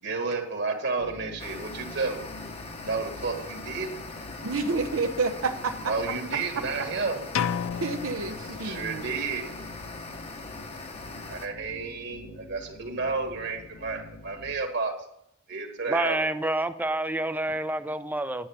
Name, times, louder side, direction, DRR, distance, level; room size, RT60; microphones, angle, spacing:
voice 1, 0.0-2.2 2.8-4.0 5.8-7.2 8.6-9.5 11.3-14.9 15.5-16.2, right 4 dB, 55° right, 4 dB, 1.7 m, -31 dB
sound 1, 1.0-14.5, left 2 dB, 60° left, 1.1 m, -46 dB
sound 2, 1.4-11.5, left 3 dB, 30° left, 1.0 m, -41 dB
voice 2, 4.4-5.7 7.8-9.1, right 3 dB, 75° right, 5 dB, 0.7 m, -29 dB
sound 3, 7.3-9.2, left 8 dB, 85° left, 0.4 m, -32 dB
voice 3, 15.9-18.5, right 2 dB, 10° right, 11 dB, 0.4 m, -28 dB
10.0 x 6.5 x 5.7 m, 0.76 s
head